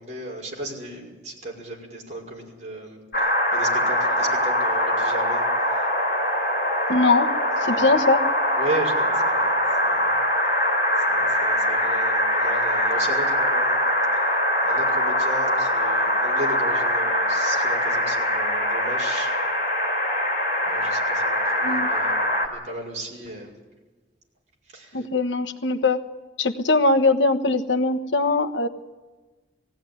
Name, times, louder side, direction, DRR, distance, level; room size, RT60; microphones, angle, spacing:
voice 1, 0.0-5.4 5.7-5.9 7.7-8.0 8.5-10.2 11.1-13.9 14.6-19.3 20.6-23.5 24.7-25.1, right 1 dB, 40° right, -1 dB, 5.9 m, -35 dB
sound 1, 3.1-22.5, equal, 50° left, 4.0 m, -23 dB
voice 2, 6.9-7.3 7.7-8.2 21.6-21.9 24.9-26.0 26.4-28.7, left 3 dB, 80° left, 7 dB, 1.2 m, -21 dB
20.0 x 16.5 x 10.0 m, 1.2 s
head